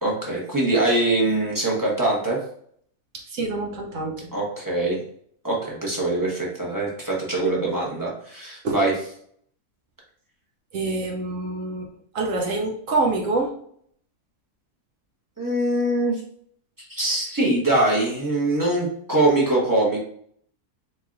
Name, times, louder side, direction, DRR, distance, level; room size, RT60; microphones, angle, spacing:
voice 1, 0.0-2.4 4.3-5.0 5.4-8.9 15.4-16.2 16.8-20.0, right 2 dB, 15° right, -4 dB, 0.9 m, -23 dB
voice 2, 3.1-4.3 8.6-8.8 10.7-11.9 12.1-13.5, right 2 dB, 65° right, 0 dB, 1.0 m, -26 dB
3.8 x 3.2 x 2.4 m, 0.64 s
omnidirectional pair, 1.6 m